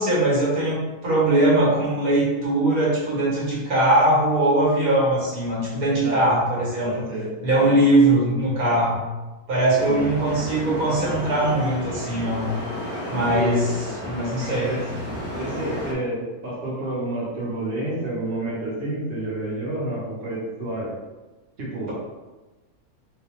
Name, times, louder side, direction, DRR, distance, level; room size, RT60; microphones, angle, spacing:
voice 1, 0.0-7.1 7.4-9.0 9.5-12.5 13.1-13.7 14.0-14.8, right 1 dB, 75° right, -6 dB, 1.5 m, -21 dB
voice 2, 6.8-7.3 7.6-7.7 9.8-10.0 13.3-14.0 14.7-14.8 15.4-21.0 21.6-21.9, right 1 dB, 50° right, -7 dB, 1.2 m, -29 dB
Atmosphere - Shore (Loop), 9.8-15.9, equal, 10° left, 0.7 m, -32 dB
4.0 x 2.3 x 3.0 m, 1.2 s
omnidirectional pair, 1.6 m